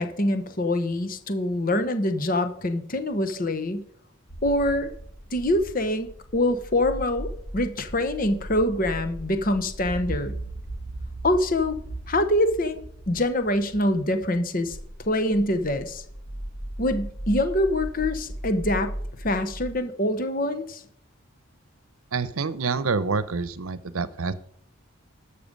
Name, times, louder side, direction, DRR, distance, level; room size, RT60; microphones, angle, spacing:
voice 1, 0.0-3.8 4.4-4.9 5.3-10.3 11.2-11.8 12.1-12.8 13.1-14.8 15.1-16.0 16.8-18.9 19.2-20.8, left 1 dB, 40° left, 10 dB, 0.9 m, -25 dB
sound 1, 4.3-19.7, right 1 dB, 55° left, 2.1 m, -37 dB
voice 2, 22.1-24.3, right 4 dB, 80° right, 16 dB, 0.8 m, -27 dB
12.5 x 6.8 x 5.2 m, 0.66 s
head